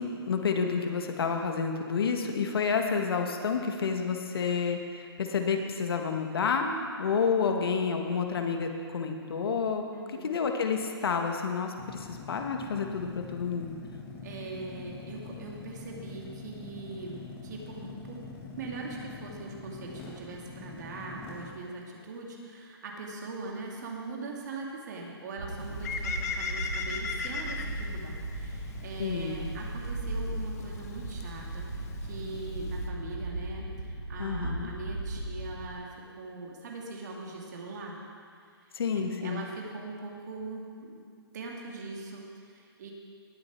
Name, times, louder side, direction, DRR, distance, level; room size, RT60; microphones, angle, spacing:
voice 1, 0.0-9.8 10.2-13.7 29.0-29.5 34.2-34.7 38.7-39.4, left 5 dB, 65° left, 4 dB, 1.6 m, -29 dB
voice 2, 9.9-10.4 14.2-18.3 18.6-31.6 32.0-38.0 39.2-41.0 41.3-42.9, right 3 dB, 45° right, -1 dB, 2.2 m, -41 dB
sound 1, 11.8-21.5, left 4 dB, 15° left, 1.5 m, -44 dB
sound 2, 25.4-35.7, right 2 dB, 85° right, 2.5 m, -37 dB
Bird, 25.6-32.9, left 5 dB, 40° left, 1.0 m, -39 dB
19.0 x 7.6 x 4.6 m, 2.2 s
hypercardioid pair, 155°, 13 cm